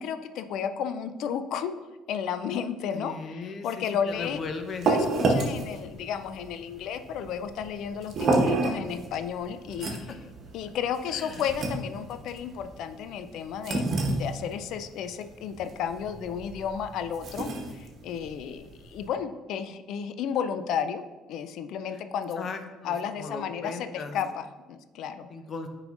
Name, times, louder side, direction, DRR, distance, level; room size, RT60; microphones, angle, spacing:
voice 1, 0.0-1.7 2.1-4.4 4.8-9.9 10.5-22.5 22.8-25.3, left 7 dB, 65° left, 9 dB, 0.4 m, -33 dB
voice 2, 2.9-4.9 9.9-10.0 11.1-11.4 22.4-24.2 25.3-25.7, left 4 dB, 45° left, 6 dB, 0.8 m, -37 dB
sound 1, 4.1-19.1, right 2 dB, 50° right, 1.2 m, -31 dB
9.0 x 4.9 x 2.5 m, 1.2 s
hypercardioid pair, 60°, 0 cm